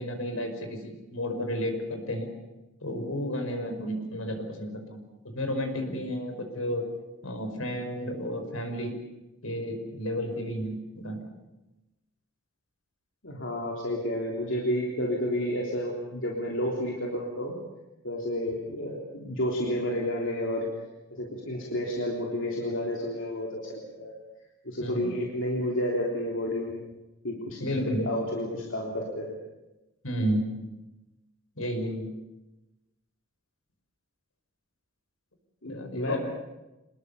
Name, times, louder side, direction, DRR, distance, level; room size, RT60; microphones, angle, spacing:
voice 1, 0.0-2.3 2.8-5.0 5.3-6.8 7.2-9.0 9.4-11.2 24.8-25.1 27.6-28.1 30.0-30.6 31.6-32.1 35.7-36.2, equal, 80° left, 5 dB, 5.4 m, -32 dB
voice 2, 13.2-17.6 18.0-20.7 21.1-24.1 24.7-26.8 27.2-29.4 35.6-36.2, left 1 dB, 65° left, -2 dB, 3.6 m, -31 dB
26.5 x 20.5 x 7.1 m, 1.0 s
head